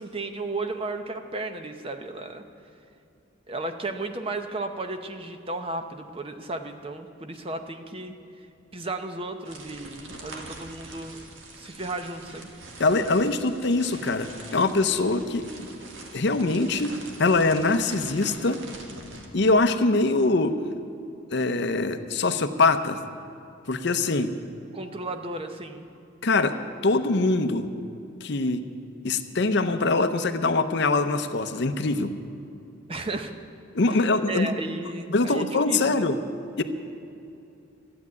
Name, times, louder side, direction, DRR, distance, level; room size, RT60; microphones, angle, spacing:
voice 1, 0.0-2.4 3.5-8.1 8.7-11.2 11.6-12.5 24.7-25.9 32.9-33.3 33.9-36.1, right 2 dB, 25° right, 7 dB, 0.7 m, -34 dB
sound 1, 9.4-19.3, right 2 dB, 70° right, 1.7 m, -44 dB
voice 2, 12.8-15.4 16.1-16.9 17.2-18.6 19.3-20.5 21.3-23.0 23.7-24.3 26.2-26.5 26.8-27.7 28.2-28.6 29.0-32.1 33.7-34.5 35.1-36.2 36.6-36.7, left 3 dB, 55° left, 10 dB, 0.7 m, -23 dB
13.0 x 8.7 x 9.4 m, 2.7 s
head